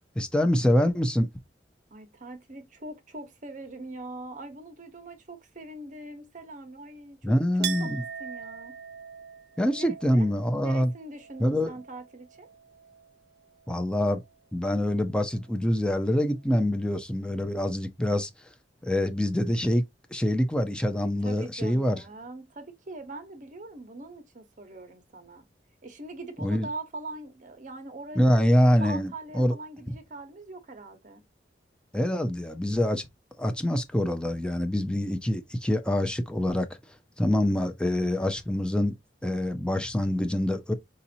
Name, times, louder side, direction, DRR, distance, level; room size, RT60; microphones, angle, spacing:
voice 1, 0.2-1.3 7.2-8.0 9.6-10.9 11.4-11.7 13.7-14.2 14.5-18.3 18.8-19.8 20.1-22.0 26.4-26.7 28.2-29.5 29.9-30.0 31.9-33.1 33.4-36.7 37.2-39.0 39.2-40.7, left 1 dB, 5° left, 0.6 m, -25 dB
voice 2, 1.9-7.3 7.8-7.9 8.2-8.7 9.8-10.3 10.6-12.5 21.2-25.5 25.8-28.3 28.7-31.2, right 2 dB, 45° right, 1.0 m, -42 dB
Chink clink, 7.6-13.1 13.4-14.3, right 9 dB, 65° right, 0.4 m, -41 dB
5.0 x 2.8 x 2.7 m
head